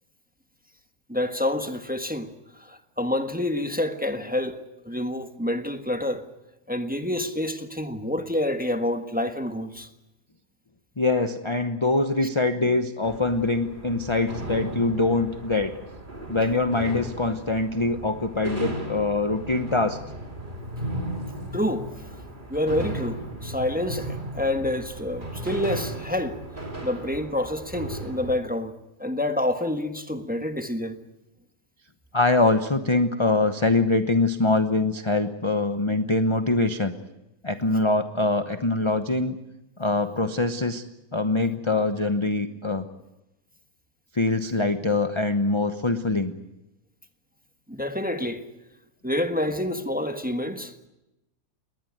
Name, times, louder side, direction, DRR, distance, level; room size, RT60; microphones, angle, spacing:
voice 1, 1.1-4.6 4.8-6.2 6.7-9.9 21.5-21.9 22.5-26.4 26.8-28.7 29.0-31.0 47.7-48.4 49.0-50.9, left 1 dB, 5° right, 1.2 m, -28 dB
voice 2, 11.0-15.7 16.3-20.0 32.1-36.9 37.4-39.4 39.8-40.8 41.1-42.8 44.1-46.4, left 2 dB, 25° left, 0.9 m, -23 dB
sound 1, 13.0-28.3, right 1 dB, 30° right, 3.4 m, -36 dB
21.0 x 19.5 x 9.4 m
omnidirectional pair, 1.6 m